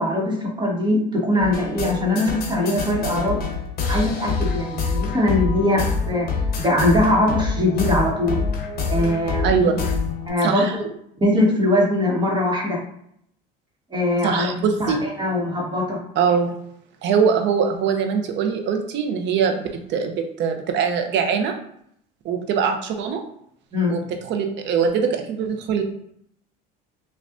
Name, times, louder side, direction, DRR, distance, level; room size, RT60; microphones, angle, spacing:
voice 1, 0.0-3.4 3.9-6.3 6.6-8.4 8.9-9.5 10.3-10.9 11.2-12.8 13.9-14.5 14.8-16.0 23.7-24.0, left 1 dB, 20° right, -2 dB, 1.3 m, -21 dB
sound 1, 1.4-10.3, left 5 dB, 45° left, 1.0 m, -26 dB
voice 2, 9.4-9.8 10.4-10.7 14.2-15.0 16.2-16.6 17.0-21.5 22.2-23.2 23.9-25.8, right 6 dB, 60° right, 5 dB, 0.7 m, -22 dB
5.3 x 2.4 x 2.6 m, 0.70 s
supercardioid pair, 95°, 21 cm